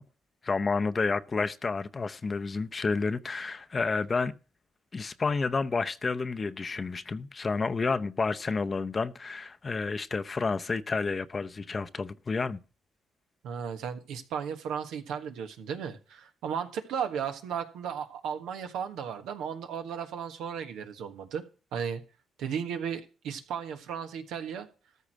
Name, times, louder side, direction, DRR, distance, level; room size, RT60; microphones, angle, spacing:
voice 1, 0.4-4.3 4.9-12.6, left 4 dB, 35° left, 0.7 m, -30 dB
voice 2, 13.4-21.4 21.7-22.0 22.4-24.7, right 7 dB, 85° right, 1.4 m, -35 dB
13.5 x 4.8 x 7.5 m
cardioid pair, 90°, 0 cm